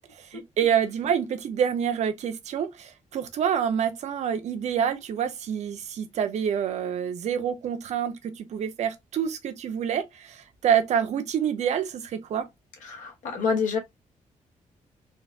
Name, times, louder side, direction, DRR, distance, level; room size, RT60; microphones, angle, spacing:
voice 1, 0.2-12.5, right 8 dB, 60° right, 0.6 m, -27 dB
voice 2, 12.8-13.8, left 5 dB, 80° left, 1.0 m, -27 dB
3.9 x 2.5 x 2.2 m
wide cardioid pair, 170°, 13 cm